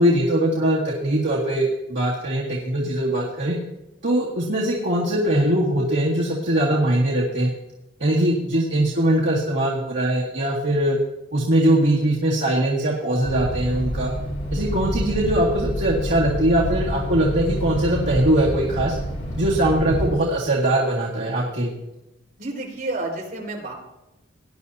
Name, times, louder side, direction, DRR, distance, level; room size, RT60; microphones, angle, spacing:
voice 1, 0.0-3.6 4.0-7.5 8.0-11.0 11.3-14.1 14.5-18.9 19.3-21.8, right 1 dB, 70° right, -5 dB, 2.0 m, -21 dB
sound 1, 13.2-20.1, equal, 65° left, 3.6 m, -28 dB
voice 2, 22.4-23.7, right 2 dB, 50° right, -3 dB, 4.2 m, -30 dB
19.0 x 11.0 x 2.8 m, 0.96 s
head